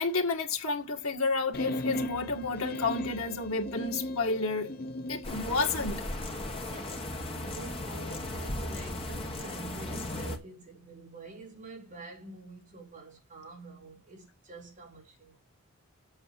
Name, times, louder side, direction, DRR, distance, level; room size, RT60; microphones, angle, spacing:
voice 1, 0.0-4.8 5.1-6.1, left 3 dB, 80° left, 1.9 m, -30 dB
sound 1, 1.5-5.3, left 1 dB, 45° left, 1.0 m, -36 dB
sound 2, 5.2-10.4, left 1 dB, 25° left, 1.7 m, -36 dB
voice 2, 6.7-15.3, right 3 dB, 35° right, 4.5 m, -47 dB
8.0 x 6.9 x 4.7 m
head